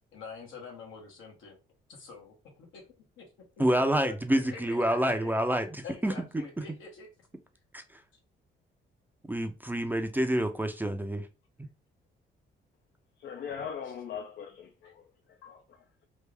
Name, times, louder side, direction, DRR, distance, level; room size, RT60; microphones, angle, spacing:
voice 1, 0.1-1.6 1.9-3.3 3.6-5.3 5.8-7.1 15.4-15.5, left 5 dB, 85° left, 1.4 m, -46 dB
voice 2, 3.6-6.1 7.7-8.0 9.3-11.3, right 1 dB, 10° right, 0.5 m, -28 dB
voice 3, 13.2-16.1, left 7 dB, 60° left, 0.5 m, -41 dB
3.3 x 2.5 x 3.4 m
cardioid pair, 90°, 20 cm